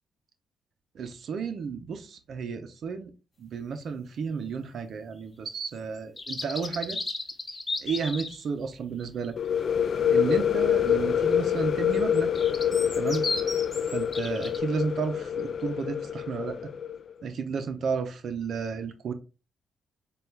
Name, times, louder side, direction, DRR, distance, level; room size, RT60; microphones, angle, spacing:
voice 1, 0.9-3.1 3.4-7.0 7.8-9.4 10.1-12.3 12.9-13.3 13.9-16.7 17.2-19.1, right 5 dB, 65° right, 0.6 m, -32 dB
sound 1, 6.0-8.4 12.0-14.6, left 3 dB, 25° left, 0.9 m, -34 dB
sound 2, 9.4-17.0, left 8 dB, 55° left, 0.3 m, -26 dB
6.8 x 2.3 x 3.2 m
cardioid pair, 95°, 0 cm